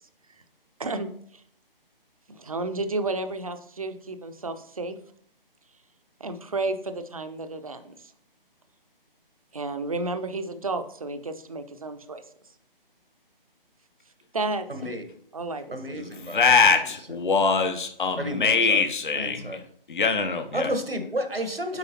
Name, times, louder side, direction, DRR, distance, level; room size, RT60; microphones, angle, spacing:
voice 1, 0.8-1.4 2.3-5.0 6.2-8.1 9.5-12.2 14.3-14.7 15.3-15.8, right 2 dB, 40° right, 9 dB, 0.5 m, -32 dB
voice 2, 14.7-15.0 15.7-16.7 18.2-19.6 20.5-21.8, equal, 85° right, 7 dB, 1.2 m, -32 dB
voice 3, 16.0-19.6 19.9-20.7, left 5 dB, 55° left, 9 dB, 0.7 m, -23 dB
7.9 x 4.8 x 2.8 m, 0.64 s
figure-of-eight pair, 145°, 29 cm